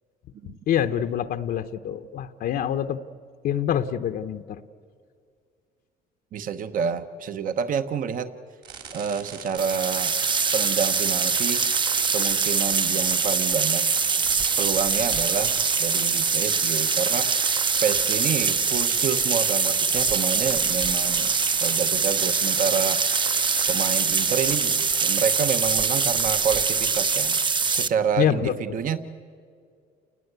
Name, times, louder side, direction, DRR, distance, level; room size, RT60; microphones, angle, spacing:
voice 1, 0.7-3.0 3.4-4.6 28.2-28.8, left 9 dB, 65° left, 8 dB, 0.9 m, -26 dB
voice 2, 6.3-8.3 8.9-10.2 10.5-11.6 12.1-13.8 14.6-17.3 17.8-21.3 21.6-23.0 23.7-27.3 27.7-29.0, right 7 dB, 55° right, 10 dB, 1.1 m, -28 dB
sound 1, 8.6-25.6, right 7 dB, 70° right, 3.6 m, -41 dB
sound 2, 9.6-27.9, right 5 dB, 30° right, 0.7 m, -23 dB
29.0 x 20.0 x 8.1 m, 2.2 s
cardioid pair, 110°, 17 cm